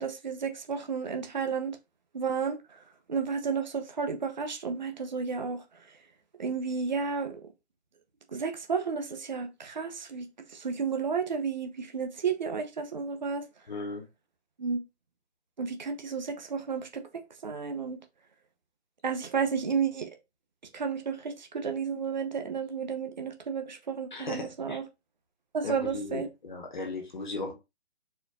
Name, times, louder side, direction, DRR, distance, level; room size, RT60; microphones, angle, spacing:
voice 1, 0.0-1.8 2.1-2.8 3.1-5.8 6.4-7.4 8.3-13.4 14.6-14.8 15.6-17.0 17.4-18.0 19.0-20.1 20.7-24.8 25.5-26.3, right 5 dB, 40° right, 0.9 m, -32 dB
voice 2, 13.7-14.0 24.1-24.8 25.6-27.5, left 3 dB, 45° left, 1.6 m, -37 dB
4.4 x 4.3 x 2.7 m
hypercardioid pair, 165°, 34 cm